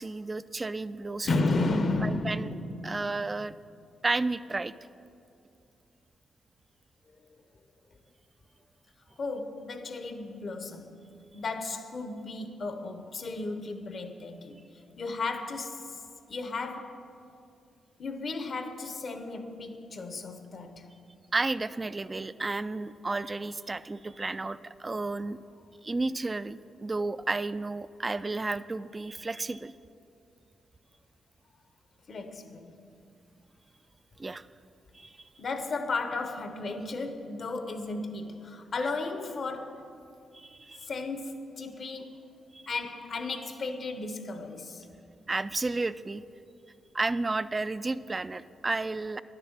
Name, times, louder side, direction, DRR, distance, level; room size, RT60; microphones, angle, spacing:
voice 1, 0.0-1.4 2.0-2.6 2.8-3.5 4.0-4.7 21.3-25.4 25.8-29.7 34.2-34.5 34.9-35.1 40.3-40.9 42.5-42.6 45.3-46.2 46.9-49.2, right 3 dB, 30° right, 0.3 m, -32 dB
voice 2, 1.2-3.1 9.2-10.9 11.3-14.6 15.0-16.0 16.3-17.0 18.0-20.9 32.1-32.8 35.4-39.9 40.8-42.3 42.7-44.8, left 3 dB, 55° left, 0.9 m, -34 dB
10.5 x 6.8 x 7.2 m
supercardioid pair, 50°, 0 cm